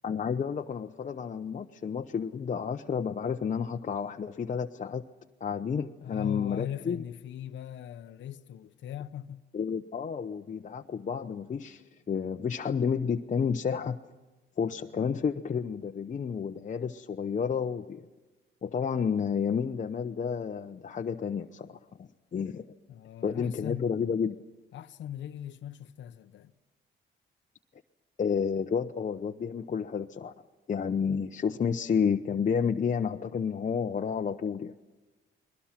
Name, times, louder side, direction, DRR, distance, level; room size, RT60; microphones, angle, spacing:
voice 1, 0.0-5.0 5.4-7.0 9.5-14.0 14.6-18.1 18.6-22.7 23.2-24.4 28.2-30.3 30.7-34.7, left 6 dB, 40° left, 0.9 m, -31 dB
voice 2, 6.0-9.5 22.9-24.0 24.7-26.5, left 10 dB, 70° left, 0.9 m, -40 dB
30.0 x 21.5 x 6.0 m
cardioid pair, 90°, 20 cm